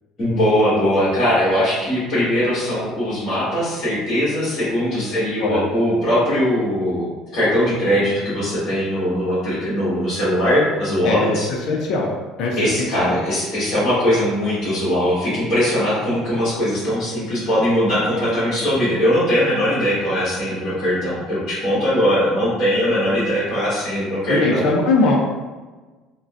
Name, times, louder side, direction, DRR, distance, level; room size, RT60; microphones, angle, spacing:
voice 1, 0.2-11.5 12.6-24.6, equal, 40° left, -12 dB, 1.5 m, -20 dB
voice 2, 11.0-13.2 24.3-25.2, left 3 dB, 55° left, -1 dB, 0.4 m, -21 dB
3.7 x 2.1 x 2.4 m, 1.3 s
cardioid pair, 135°, 0 cm